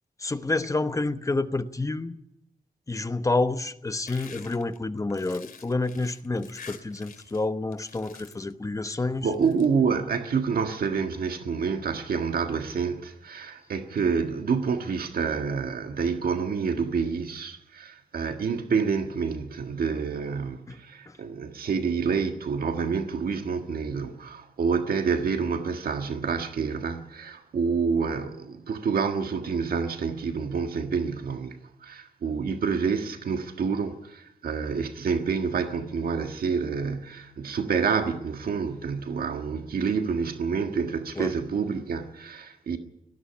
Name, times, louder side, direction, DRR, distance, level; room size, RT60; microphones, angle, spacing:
voice 1, 0.2-2.2 2.9-9.3 20.7-20.8 21.1-21.2 41.2-41.3, left 2 dB, 20° left, 1.0 m, -29 dB
sound 1, 4.1-7.4 7.7-8.5 9.2-9.6, left 6 dB, 75° left, 2.5 m, -47 dB
voice 2, 9.2-42.8, right 5 dB, 85° right, 1.6 m, -28 dB
19.0 x 14.5 x 9.9 m
wide cardioid pair, 125°, 15 cm